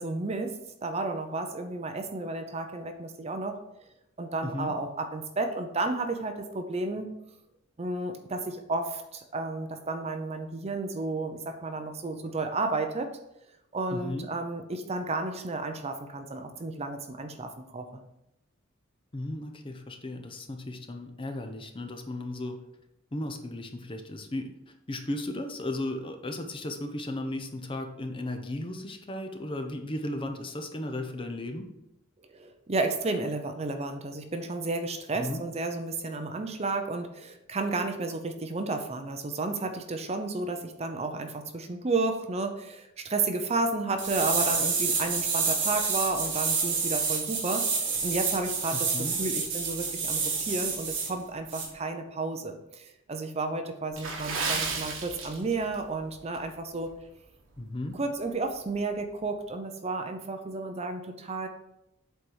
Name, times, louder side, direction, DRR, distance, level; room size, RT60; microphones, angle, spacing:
voice 1, 0.0-3.6 4.2-7.1 7.8-13.1 13.7-17.8 32.3-56.9 57.9-61.5, right 3 dB, 30° right, 6 dB, 0.6 m, -32 dB
voice 2, 4.4-4.7 13.9-14.3 19.1-22.6 23.1-24.5 24.9-31.7 35.1-35.4 48.7-49.2 57.6-58.0, left 1 dB, 25° left, 5 dB, 0.7 m, -35 dB
sound 1, 44.0-51.1 51.5-51.7, right 5 dB, 55° right, 2.1 m, -29 dB
Water / Splash splatter, 53.9-55.8 56.1-56.4 56.9-57.1 57.6-57.7, right 4 dB, 70° right, 1.5 m, -33 dB
7.9 x 4.1 x 4.6 m, 0.85 s
head